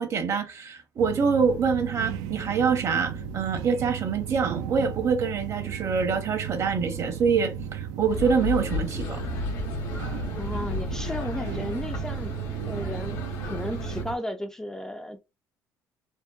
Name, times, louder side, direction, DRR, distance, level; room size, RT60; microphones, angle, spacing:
voice 1, 0.0-9.2, right 5 dB, 45° right, 0.8 m, -25 dB
sound 1, 1.0-14.2, right 9 dB, 85° right, 0.4 m, -35 dB
sound 2, 8.1-14.0, left 3 dB, 80° left, 0.8 m, -33 dB
voice 2, 10.4-12.3 12.7-15.2, left 1 dB, 10° left, 0.3 m, -34 dB
2.8 x 2.1 x 2.2 m
cardioid pair, 105°, 7 cm